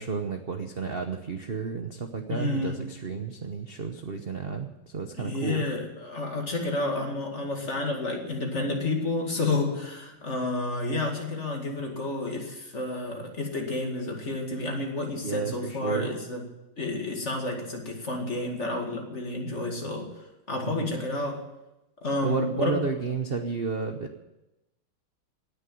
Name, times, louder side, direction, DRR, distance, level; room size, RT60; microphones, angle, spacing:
voice 1, 0.0-5.6 15.2-16.1 20.7-21.0 22.2-24.2, right 5 dB, 40° right, 5 dB, 0.8 m, -32 dB
voice 2, 2.3-2.9 5.2-16.5 16.8-21.5 22.0-22.8, left 2 dB, 35° left, 1 dB, 2.3 m, -30 dB
18.0 x 6.9 x 9.2 m, 0.96 s
omnidirectional pair, 2.3 m